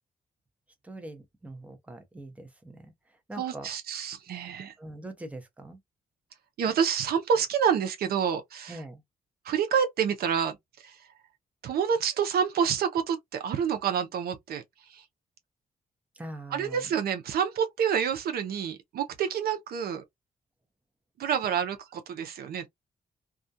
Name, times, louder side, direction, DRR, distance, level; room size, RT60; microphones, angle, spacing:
voice 1, 0.8-3.7 4.8-5.8 8.7-9.0 16.1-16.9, right 1 dB, 10° right, 0.7 m, -43 dB
voice 2, 3.4-4.7 6.6-8.8 9.4-11.0 11.6-14.6 14.9-15.0 16.5-20.0 21.2-22.7, right 7 dB, 85° right, 0.6 m, -28 dB
2.3 x 2.2 x 2.6 m
cardioid pair, 105°, 15 cm